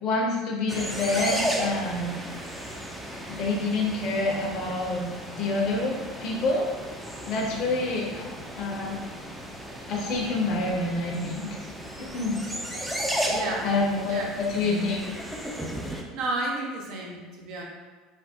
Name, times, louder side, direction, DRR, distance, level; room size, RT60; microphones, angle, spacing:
voice 1, 0.0-2.2 3.3-5.1 5.4-5.9 6.2-6.6 7.2-8.3 8.6-9.0 9.9-11.5 12.0-12.4 13.6-15.0, left 2 dB, 55° left, -1 dB, 0.6 m, -27 dB
sound 1, 0.7-16.0, equal, 5° right, 0.4 m, -35 dB
voice 2, 7.4-7.7 13.3-13.7 14.0-14.4 15.9-17.6, right 2 dB, 60° right, -1 dB, 0.7 m, -32 dB
3.3 x 2.1 x 2.8 m, 1.4 s
hypercardioid pair, 85°, 0 cm